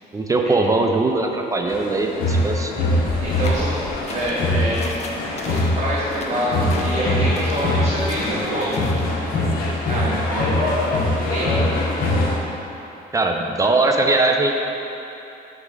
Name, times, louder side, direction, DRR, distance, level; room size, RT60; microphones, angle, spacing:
voice 1, 0.1-2.7 13.1-14.5, right 2 dB, 20° right, 3 dB, 0.4 m, -20 dB
sound 1, 1.7-12.4, left 1 dB, 60° left, 1.0 m, -23 dB
voice 2, 3.2-8.9 9.2-12.1, right 1 dB, 45° right, -8 dB, 1.2 m, -27 dB
sound 2, 3.4-9.1, left 3 dB, 40° left, 0.6 m, -39 dB
6.2 x 3.8 x 5.4 m, 2.9 s
cardioid pair, 110°, 17 cm